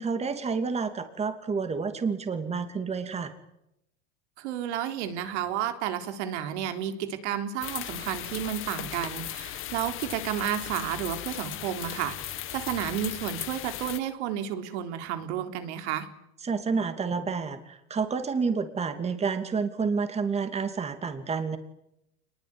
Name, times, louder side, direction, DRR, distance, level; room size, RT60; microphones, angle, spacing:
voice 1, 0.0-3.3 16.4-21.6, right 5 dB, 20° right, 8 dB, 2.8 m, -29 dB
voice 2, 4.4-16.1, right 10 dB, 75° right, 7 dB, 3.7 m, -32 dB
sound 1, 7.6-14.0, left 13 dB, 35° left, 1.9 m, -37 dB
27.5 x 21.5 x 9.8 m, 0.85 s
supercardioid pair, 140°, 34 cm